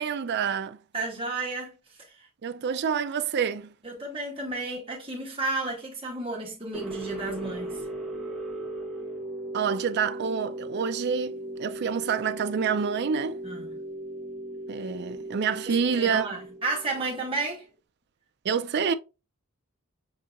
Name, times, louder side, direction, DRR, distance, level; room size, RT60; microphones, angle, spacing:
voice 1, 0.0-0.8 2.4-3.7 9.5-13.4 14.7-16.4 18.4-18.9, right 6 dB, 50° right, 0.4 m, -27 dB
voice 2, 0.9-1.7 2.2-2.3 3.8-7.8 13.4-13.7 15.7-17.6, right 2 dB, 25° right, 1.2 m, -32 dB
sound 1, 6.7-17.6, right 1 dB, ahead, 0.9 m, -37 dB
6.6 x 2.8 x 2.4 m
head